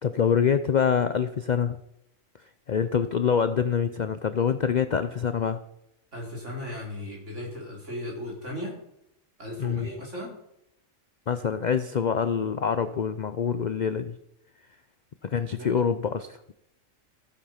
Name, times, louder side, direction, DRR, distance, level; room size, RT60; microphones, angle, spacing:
voice 1, 0.0-1.8 2.7-5.6 9.6-9.9 11.3-14.2 15.2-16.4, left 7 dB, 55° left, 12 dB, 0.5 m, -25 dB
voice 2, 6.1-8.8 9.4-10.4 15.6-15.9, left 1 dB, 60° right, -2 dB, 4.2 m, -36 dB
14.5 x 8.7 x 5.7 m, 0.81 s
omnidirectional pair, 1.4 m